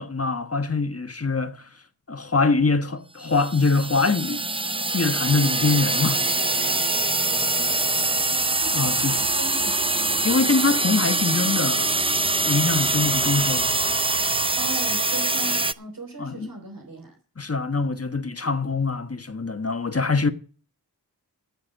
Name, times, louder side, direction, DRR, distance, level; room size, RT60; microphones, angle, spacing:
voice 1, 0.0-1.6 2.1-4.4 4.9-6.3 6.6-6.8 8.7-9.1 10.2-11.9 12.4-13.7 16.2-16.5 17.4-20.3, left 4 dB, 40° left, 1.3 m, -24 dB
sound 1, 3.3-15.7, right 2 dB, 15° right, 0.5 m, -24 dB
voice 2, 7.5-10.4 14.6-17.2, right 2 dB, 65° right, 3.7 m, -39 dB
14.0 x 7.4 x 5.4 m
wide cardioid pair, 60°, 37 cm